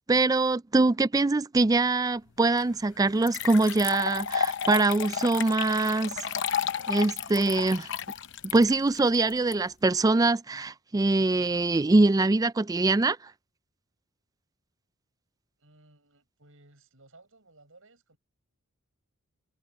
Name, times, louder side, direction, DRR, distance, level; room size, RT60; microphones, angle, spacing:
voice 1, 0.1-6.2 6.9-7.9 8.5-13.2, right 2 dB, 15° right, 0.3 m, -23 dB
sound 1, 2.4-9.2, left 6 dB, 80° left, 3.4 m, -55 dB
sound 2, 2.6-2.7 3.2-9.5, left 7 dB, 55° left, 0.8 m, -32 dB
voice 2, 15.6-18.2, right 2 dB, 65° right, 7.7 m, -58 dB
head